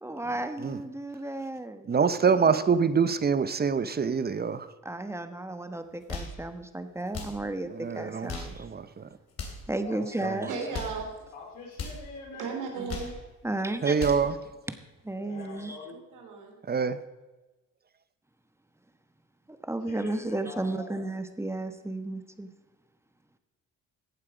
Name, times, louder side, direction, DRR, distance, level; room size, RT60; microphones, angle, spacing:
voice 1, 0.0-1.9 4.8-8.7 9.7-10.5 13.4-14.0 15.0-15.8 19.5-22.5, right 2 dB, 10° right, 9 dB, 1.1 m, -33 dB
voice 2, 1.9-4.7 7.7-8.3 8.6-9.1 10.2-10.5 13.8-14.4 16.7-17.0, right 6 dB, 30° right, 13 dB, 0.8 m, -25 dB
sound 1, 5.9-6.4 7.1-7.4 8.1-8.6 9.3-9.7 10.5-11.0 11.7-12.0 12.7-13.2 13.8-14.3, left 4 dB, 55° left, 3.1 m, -38 dB
voice 3, 9.8-10.7 11.3-12.6 15.1-16.0 19.9-21.0, left 3 dB, 90° left, -2 dB, 4.4 m, -43 dB
voice 4, 10.5-11.0 12.4-13.1 15.9-16.5, right 5 dB, 85° right, 2 dB, 2.9 m, -35 dB
15.0 x 8.4 x 5.1 m, 1.1 s
cardioid pair, 90°, 30 cm